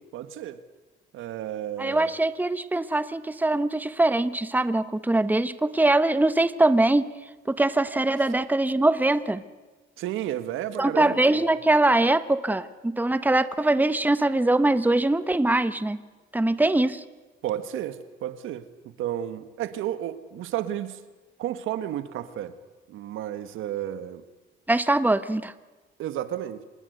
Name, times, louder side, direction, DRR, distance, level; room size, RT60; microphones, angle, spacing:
voice 1, 0.1-0.6 1.1-2.1 10.0-11.4 17.4-18.7 19.0-21.0 21.4-22.6 22.9-24.2 26.0-26.6, right 11 dB, 90° right, 12 dB, 1.6 m, -32 dB
voice 2, 1.8-7.1 7.5-9.4 10.8-16.0 16.3-17.0 24.7-25.5, right 2 dB, 10° right, 13 dB, 1.2 m, -22 dB
26.5 x 20.0 x 8.1 m, 1.3 s
cardioid pair, 90°, 20 cm